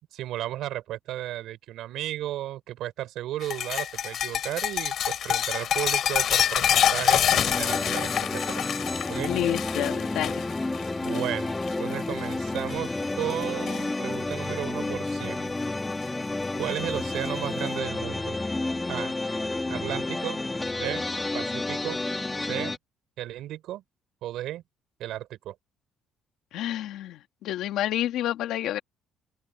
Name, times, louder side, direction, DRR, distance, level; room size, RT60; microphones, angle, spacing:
voice 1, 0.1-8.6 9.1-9.3 11.0-15.5 16.5-18.4 18.9-19.1 19.7-20.4 20.8-21.1 21.3-22.0 22.5-22.8 23.2-23.8 24.2-24.6 25.0-25.5, right 13 dB, 75° right, 4.6 m, -34 dB
sound 1, 3.4-11.9 12.2-12.6 13.0-13.9 15.2-15.3 16.6-16.7, left 9 dB, 55° left, 6.8 m, -26 dB
sound 2, 7.3-22.8, left 2 dB, 15° left, 2.8 m, -30 dB
voice 2, 9.3-10.4 26.5-28.8, left 13 dB, 75° left, 2.1 m, -29 dB
open air
cardioid pair, 120°, 0 cm